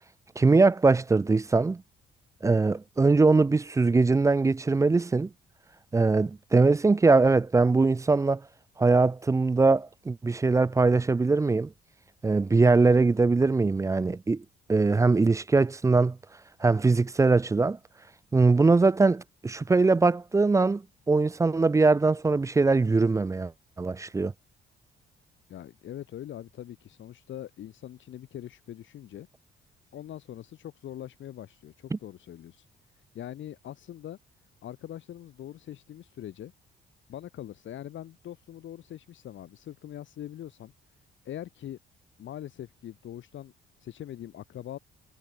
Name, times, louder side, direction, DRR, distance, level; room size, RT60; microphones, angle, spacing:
voice 1, 0.4-1.8 2.4-5.3 5.9-8.4 8.8-11.7 12.2-14.4 14.7-16.2 16.6-17.8 18.3-23.5 23.8-24.3 31.9-32.0, right 3 dB, 15° right, 0.4 m, -22 dB
voice 2, 25.5-29.3 29.9-32.7 33.1-34.2 34.6-36.5 37.1-40.7 41.2-41.8 42.2-43.5 43.8-44.8, left 11 dB, 70° left, 4.3 m, -42 dB
cardioid pair, 90°, 20 cm